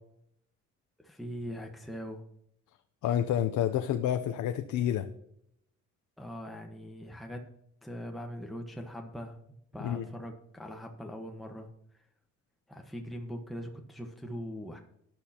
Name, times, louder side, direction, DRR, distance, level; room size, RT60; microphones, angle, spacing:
voice 1, 1.0-2.2 6.2-7.5 7.8-9.4 9.7-11.7 11.9-12.0 12.7-14.8, equal, ahead, 2 dB, 1.2 m, -41 dB
voice 2, 3.0-5.1 9.8-10.0, left 10 dB, 75° left, 8 dB, 0.7 m, -29 dB
14.0 x 10.5 x 2.9 m, 0.73 s
cardioid pair, 90°, 30 cm